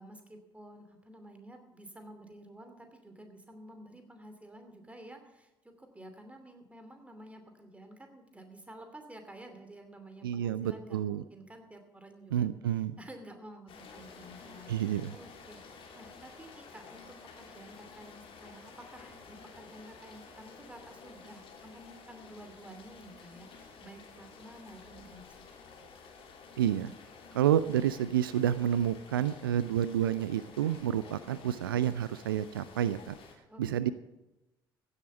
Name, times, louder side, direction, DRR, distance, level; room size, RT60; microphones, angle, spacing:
voice 1, 0.0-25.5 33.5-33.9, right 1 dB, 10° right, 6 dB, 2.7 m, -51 dB
voice 2, 10.2-11.2 12.3-13.0 14.7-15.1 26.6-26.9 27.3-33.1 33.6-33.9, right 10 dB, 80° right, 15 dB, 0.4 m, -29 dB
Rain, 13.7-33.3, left 5 dB, 50° left, 2.8 m, -52 dB
15.5 x 8.0 x 6.9 m, 1.0 s
figure-of-eight pair, 50°, 12 cm